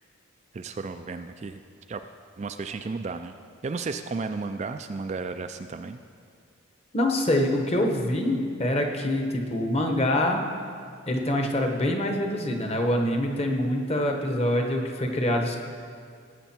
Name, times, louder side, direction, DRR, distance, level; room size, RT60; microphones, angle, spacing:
voice 1, 0.5-1.6 1.9-2.0 2.4-3.3 3.6-6.0, right 4 dB, 30° right, 8 dB, 0.3 m, -33 dB
voice 2, 6.9-10.4 11.1-15.6, left 1 dB, 30° left, 3 dB, 1.1 m, -25 dB
18.0 x 8.2 x 4.4 m, 2.3 s
head